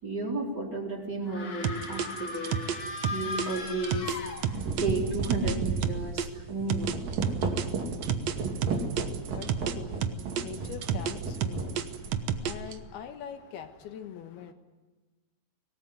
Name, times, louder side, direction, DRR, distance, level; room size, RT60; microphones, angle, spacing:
voice 1, 0.0-2.5 3.1-4.1 4.8-7.0, right 2 dB, 25° right, 4.5 m, -33 dB
sound 1, 1.3-4.9, left 3 dB, 55° left, 1.0 m, -38 dB
sound 2, 1.6-6.3 6.7-9.7 10.0-12.7, right 9 dB, 75° right, 1.5 m, -30 dB
sound 3, 3.5-3.7 4.3-12.7, right 4 dB, 60° right, 4.4 m, -33 dB
voice 2, 8.2-14.5, left 8 dB, 80° left, 3.3 m, -44 dB
24.0 x 18.5 x 9.5 m
omnidirectional pair, 4.6 m